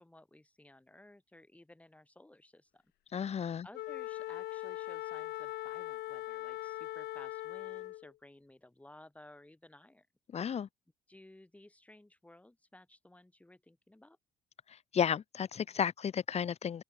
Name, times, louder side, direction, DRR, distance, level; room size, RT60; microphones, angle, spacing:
voice 1, 0.0-2.8 3.1-3.2 3.6-10.1 10.3-10.5 11.1-14.2, left 1 dB, 10° left, 7.3 m, -57 dB
voice 2, 3.1-3.7 10.3-10.7 14.7-16.8, left 8 dB, 40° left, 1.2 m, -33 dB
Wind instrument woodwind instrument, 3.7-8.1, left 16 dB, 75° left, 2.5 m, -40 dB
open air
cardioid pair, 110°, 17 cm